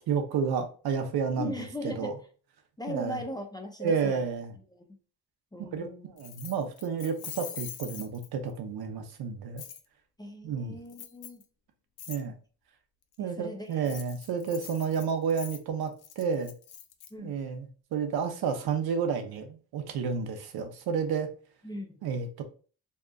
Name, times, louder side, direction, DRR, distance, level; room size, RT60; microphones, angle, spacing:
voice 1, 0.1-2.1 2.9-3.2 3.8-4.5 5.6-9.6 10.4-10.8 12.1-12.3 13.2-16.5 17.2-21.3 22.0-22.4, right 6 dB, 75° right, 6 dB, 0.6 m, -31 dB
voice 2, 1.3-2.1 2.8-4.3 4.7-5.0 5.5-6.1 10.2-11.4 13.2-13.9 17.1-17.4 21.6-22.0, left 2 dB, 10° left, 4 dB, 0.4 m, -39 dB
Keys jangling, 6.2-8.5 9.6-9.8 10.9-11.4 12.0-12.2 13.7-17.1, left 9 dB, 75° left, 0.5 m, -43 dB
2.8 x 2.4 x 2.2 m, 0.39 s
cardioid pair, 80°, 37 cm